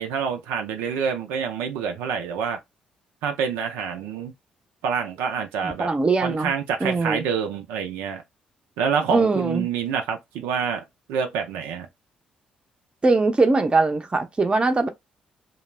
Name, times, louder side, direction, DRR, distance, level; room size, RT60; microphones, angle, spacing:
voice 1, 0.0-2.6 3.2-4.3 4.8-5.9 6.2-8.2 8.8-10.8 11.1-11.9, right 6 dB, 80° right, 0.4 m, -27 dB
voice 2, 5.6-6.5 6.8-7.3 9.1-9.7 13.0-14.9, right 3 dB, 25° right, 0.6 m, -21 dB
2.3 x 2.0 x 3.1 m
hypercardioid pair, 55°, 4 cm